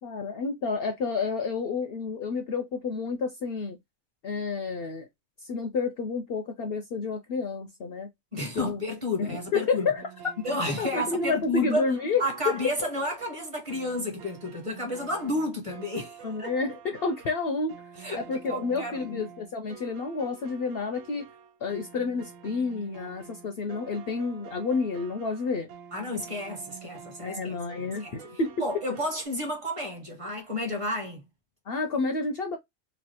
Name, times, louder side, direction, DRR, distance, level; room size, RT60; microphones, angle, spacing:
voice 1, 0.0-3.8 4.2-5.1 5.4-8.1 8.5-8.8 9.2-10.1 10.8-12.5 16.2-17.7 18.2-21.3 21.6-25.7 27.2-28.5 31.7-32.6, left 4 dB, 65° left, 0.6 m, -30 dB
voice 2, 8.3-9.9 10.4-11.9 12.2-16.5 18.0-19.2 25.9-28.2 28.6-31.2, left 1 dB, 25° right, 0.9 m, -31 dB
sound 1, 10.0-29.3, right 7 dB, 80° right, 1.0 m, -48 dB
3.1 x 2.4 x 2.8 m
omnidirectional pair, 1.3 m